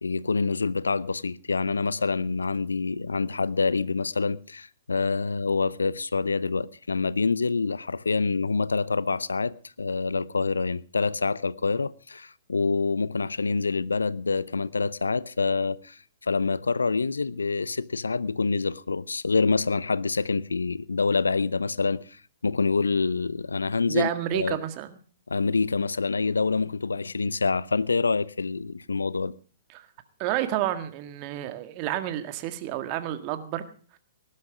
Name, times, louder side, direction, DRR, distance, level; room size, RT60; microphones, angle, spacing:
voice 1, 0.0-24.6 25.3-29.3, left 4 dB, 80° left, 0.7 m, -26 dB
voice 2, 23.9-25.0 29.7-29.9 30.2-33.7, right 13 dB, 35° right, 1.8 m, -30 dB
19.0 x 12.0 x 5.0 m
figure-of-eight pair, 115°, 0 cm